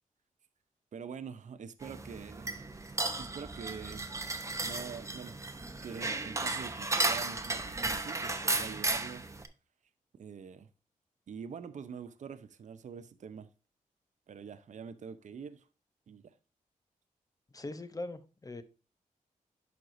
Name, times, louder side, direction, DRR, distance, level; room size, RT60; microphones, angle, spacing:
voice 1, 0.9-2.5 3.2-4.1 4.6-5.3 5.8-9.3 10.2-10.7 11.3-13.5 14.3-15.6 16.1-16.3, right 6 dB, 65° right, 0.6 m, -45 dB
sound 1, 1.8-9.5, right 2 dB, 20° right, 0.8 m, -34 dB
voice 2, 17.5-18.6, left 2 dB, 25° left, 0.8 m, -41 dB
11.0 x 4.6 x 2.6 m
wide cardioid pair, 95°, 14 cm